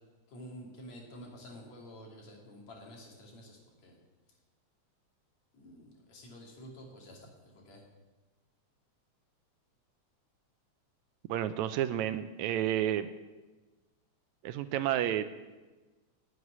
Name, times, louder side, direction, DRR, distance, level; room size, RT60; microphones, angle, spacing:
voice 1, 0.3-4.0 5.5-7.8, equal, 65° left, -1 dB, 3.8 m, -50 dB
voice 2, 11.3-13.1 14.4-15.2, right 11 dB, 80° right, 11 dB, 1.8 m, -30 dB
11.0 x 8.0 x 9.7 m, 1.2 s
omnidirectional pair, 3.4 m